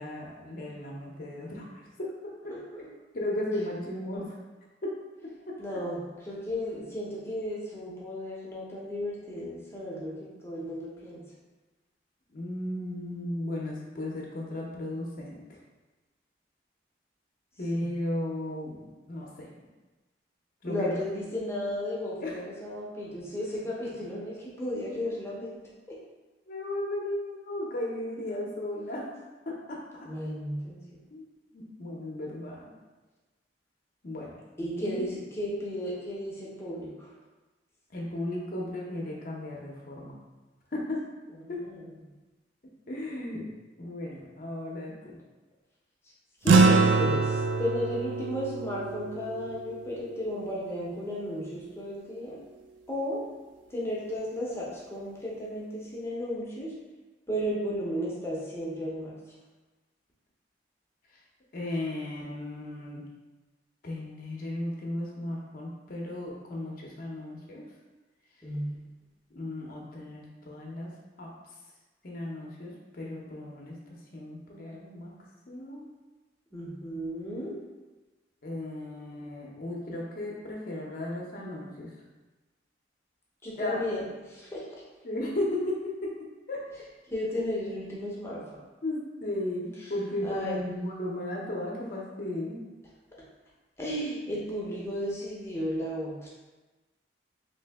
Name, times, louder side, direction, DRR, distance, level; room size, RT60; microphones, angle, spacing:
voice 1, 0.0-2.1 2.4-2.5 3.1-4.4 4.8-4.9 5.5-5.6 12.3-15.4 17.6-19.5 20.6-21.1 22.2-22.4 26.5-29.1 29.5-30.1 31.1-31.2 31.5-32.7 34.0-34.3 34.8-35.0 37.9-40.1 40.7-41.0 41.5-41.6 42.9-43.5 43.8-45.2 61.5-63.0 63.8-67.7 69.3-70.9 71.2-71.3 72.0-73.8 74.1-75.1 75.5-75.9 78.4-81.9 83.6-83.8 85.0-86.1 86.5-86.7 88.8-92.6, left 1 dB, 50° left, -2 dB, 0.6 m, -35 dB
voice 2, 5.6-11.2 20.6-25.6 25.9-26.0 30.1-30.8 34.6-37.1 41.4-41.8 46.4-52.4 52.9-53.3 53.7-56.7 57.3-59.1 68.4-68.8 76.5-77.6 83.4-84.0 84.3-84.8 87.1-88.6 90.2-90.6 93.8-96.3, equal, 15° left, -6 dB, 0.7 m, -34 dB
sound 1, 46.5-51.1, right 4 dB, 90° right, 0.3 m, -25 dB
3.2 x 2.8 x 3.3 m, 1.2 s
head